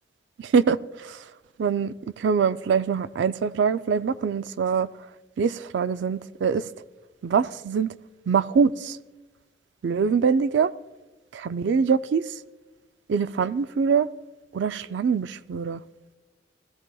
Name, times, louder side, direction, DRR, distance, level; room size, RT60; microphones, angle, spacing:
voice 1, 1.6-4.9 5.4-6.6 7.2-7.9 8.3-9.0 9.8-10.7 11.3-12.2 13.1-14.1 14.5-15.8, right 6 dB, 80° right, 0.4 m, -23 dB
20.0 x 15.5 x 2.3 m
head